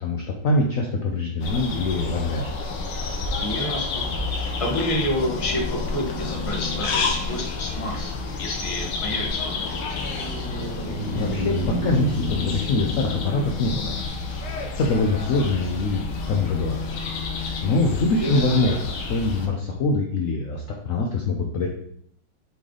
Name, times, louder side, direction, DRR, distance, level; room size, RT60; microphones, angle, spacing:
voice 1, 0.0-2.6 11.1-13.9 14.8-16.0 16.3-17.0 17.6-21.7, left 2 dB, 70° left, 1 dB, 0.7 m, -24 dB
sound 1, 1.4-19.5, left 4 dB, 90° left, 1.8 m, -30 dB
voice 2, 3.4-4.1 4.3-10.0 18.2-18.4 18.7-18.8, left 1 dB, 25° left, 0 dB, 0.9 m, -29 dB
sound 2, 8.2-17.4, equal, 60° right, 2.5 m, -34 dB
7.6 x 3.3 x 3.8 m, 0.67 s
omnidirectional pair, 2.2 m